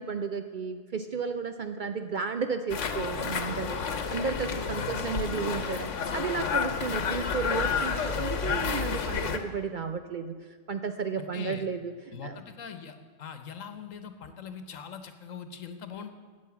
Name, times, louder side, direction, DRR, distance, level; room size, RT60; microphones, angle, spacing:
voice 1, 0.0-12.4, right 5 dB, 55° right, 8 dB, 0.5 m, -33 dB
sound 1, 2.7-9.4, left 6 dB, 70° left, 1.2 m, -30 dB
voice 2, 4.8-5.1 11.2-11.6 12.1-16.1, left 6 dB, 85° left, 8 dB, 1.4 m, -42 dB
12.5 x 8.5 x 7.0 m, 1.5 s
omnidirectional pair, 1.3 m